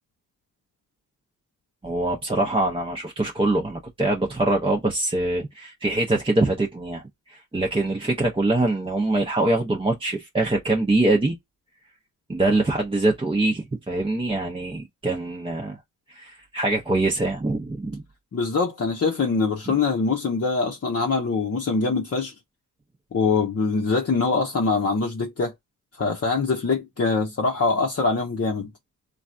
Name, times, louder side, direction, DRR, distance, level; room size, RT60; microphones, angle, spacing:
voice 1, 1.8-7.0 7.3-11.4 12.3-15.8 16.1-18.0, right 2 dB, 15° right, 0.6 m, -24 dB
voice 2, 18.3-22.3 23.1-25.5 26.0-28.7, left 4 dB, 40° left, 0.7 m, -23 dB
3.2 x 2.3 x 2.5 m
cardioid pair, 65°, 38 cm